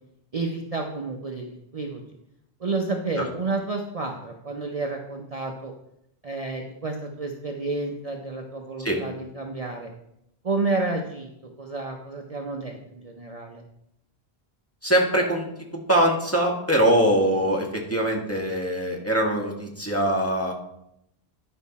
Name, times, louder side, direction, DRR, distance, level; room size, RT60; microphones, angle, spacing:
voice 1, 0.3-2.0 2.6-5.7 6.2-9.9 10.4-13.6, right 3 dB, 40° right, 1 dB, 0.8 m, -30 dB
voice 2, 14.8-20.5, right 1 dB, 15° left, -1 dB, 1.5 m, -23 dB
10.5 x 5.5 x 4.1 m, 0.79 s
omnidirectional pair, 1.1 m